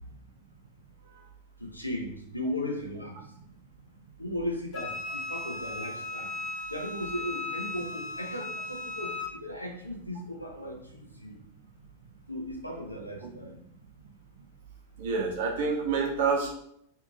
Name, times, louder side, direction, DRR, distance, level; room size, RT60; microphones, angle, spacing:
voice 1, 1.6-3.2 4.2-6.3 6.7-9.1 9.4-11.4 12.3-13.5, left 1 dB, 85° left, 1 dB, 0.5 m, -36 dB
Wind instrument woodwind instrument, 4.7-9.4, left 2 dB, 30° left, 0.5 m, -37 dB
voice 2, 15.0-16.5, right 5 dB, 55° right, 0 dB, 0.7 m, -27 dB
2.7 x 2.6 x 2.4 m, 0.73 s
figure-of-eight pair, 90°, 0 cm